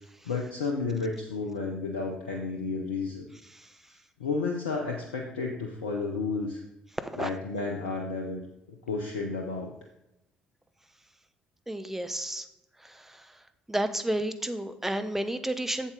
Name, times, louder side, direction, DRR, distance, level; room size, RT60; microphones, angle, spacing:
voice 1, 0.2-3.3 4.2-6.6 7.2-8.4 8.9-9.7, left 4 dB, 80° left, 1 dB, 0.7 m, -32 dB
voice 2, 7.0-7.3 11.7-12.5 12.8-13.3 13.7-15.9, right 1 dB, 5° right, 9 dB, 0.8 m, -31 dB
8.0 x 7.3 x 3.8 m, 0.90 s
figure-of-eight pair, 50°, 4 cm